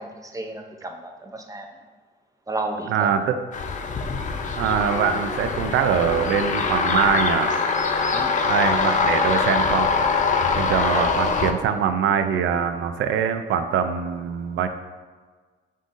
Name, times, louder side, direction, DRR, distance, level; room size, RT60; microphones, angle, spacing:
voice 1, 0.0-1.7 2.5-3.1 8.1-8.4 10.9-11.1, right 2 dB, 15° right, 3 dB, 0.5 m, -32 dB
voice 2, 2.9-3.4 4.6-7.5 8.4-9.9 10.6-14.7, right 7 dB, 75° right, 8 dB, 0.4 m, -23 dB
sound 1, 3.5-11.5, left 4 dB, 40° left, 0.4 m, -23 dB
5.2 x 3.7 x 2.5 m, 1.4 s
cardioid pair, 90°, 20 cm